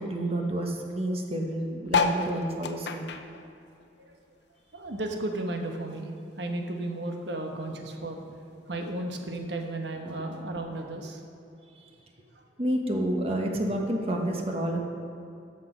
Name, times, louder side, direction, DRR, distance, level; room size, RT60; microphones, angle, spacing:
voice 1, 0.0-3.0 11.8-11.9 12.6-14.8, right 1 dB, 35° right, 1 dB, 1.1 m, -29 dB
sound 1, 1.9-4.6 5.0-6.5 7.0-7.1 7.2-7.3 7.5-7.9 8.7-8.8, left 5 dB, 70° left, 0.6 m, -31 dB
voice 2, 4.7-6.1 6.4-8.2 8.7-11.2, right 2 dB, 75° right, 3 dB, 1.2 m, -34 dB
13.5 x 6.1 x 5.1 m, 2.6 s
head